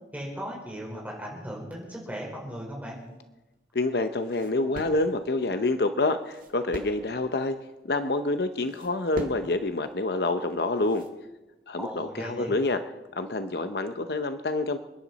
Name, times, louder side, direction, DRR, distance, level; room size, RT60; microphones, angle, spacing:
voice 1, 0.1-3.0 11.8-12.5, equal, 10° right, -2 dB, 4.5 m, -37 dB
sound 1, 2.9-11.2, equal, 50° right, 2.0 m, -44 dB
voice 2, 3.7-7.6 7.9-11.0 11.7-12.8 13.1-14.8, left 2 dB, 70° left, 9 dB, 0.8 m, -27 dB
28.5 x 10.5 x 4.1 m, 1.0 s
head